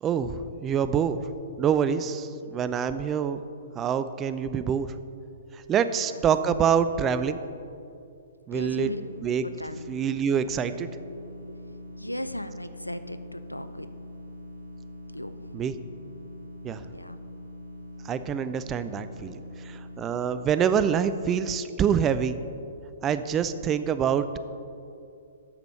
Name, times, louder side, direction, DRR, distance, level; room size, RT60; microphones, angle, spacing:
voice 1, 0.0-1.2 1.6-3.4 3.8-4.9 5.7-7.4 8.5-8.9 9.2-9.4 9.9-10.9 15.5-15.7 16.6-16.8 18.1-19.4 19.7-22.4 23.0-24.4, right 7 dB, 20° right, 12 dB, 0.4 m, -26 dB
voice 2, 8.5-9.0 9.4-9.9 11.4-13.9 15.1-15.5 16.8-17.2, left 1 dB, 85° left, 11 dB, 0.4 m, -37 dB
sound 1, 8.5-20.6, left 1 dB, 80° right, 1.3 m, -43 dB
8.5 x 6.1 x 6.6 m, 2.5 s
figure-of-eight pair, 115°, 0 cm